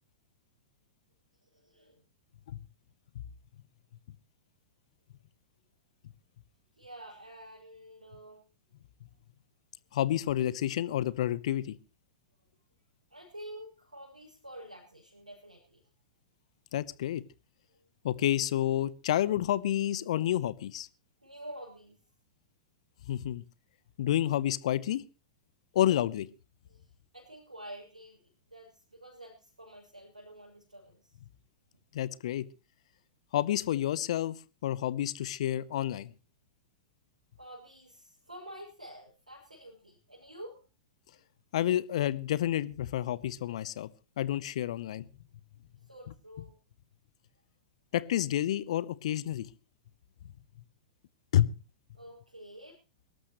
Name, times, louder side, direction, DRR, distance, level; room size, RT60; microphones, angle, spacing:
voice 1, 1.4-2.0 6.8-8.5 13.1-15.9 17.7-17.9 21.2-22.0 26.7-31.2 37.4-40.6 45.8-46.6 51.9-52.8, right 1 dB, 85° right, -5 dB, 6.3 m, -49 dB
voice 2, 9.9-11.7 16.7-17.2 18.0-20.9 23.1-23.4 24.0-25.0 25.7-26.3 31.9-32.4 33.3-34.4 34.6-36.1 41.5-43.9 44.2-45.0 47.9-49.5 51.3-51.5, left 12 dB, 60° left, 19 dB, 0.9 m, -29 dB
23.5 x 13.0 x 3.1 m, 0.32 s
figure-of-eight pair, 100°, 4 cm